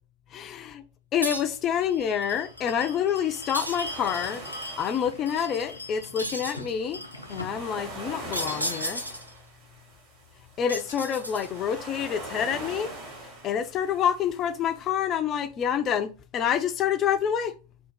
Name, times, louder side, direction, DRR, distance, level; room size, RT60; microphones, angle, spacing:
voice 1, 0.3-0.8 1.1-4.4 4.8-7.0 7.3-9.0 10.6-12.9 13.4-17.5, left 8 dB, 30° left, 0.5 m, -27 dB
sound 1, 1.2-14.9, right 1 dB, 35° right, 2.0 m, -43 dB
sound 2, 1.2-1.7 3.5-4.3 6.2-6.7 8.3-9.4 10.7-11.7, equal, 90° right, 0.6 m, -34 dB
Bell, 1.8-9.0, left 1 dB, 85° left, 0.5 m, -42 dB
3.7 x 2.5 x 4.5 m
figure-of-eight pair, 90°, 0 cm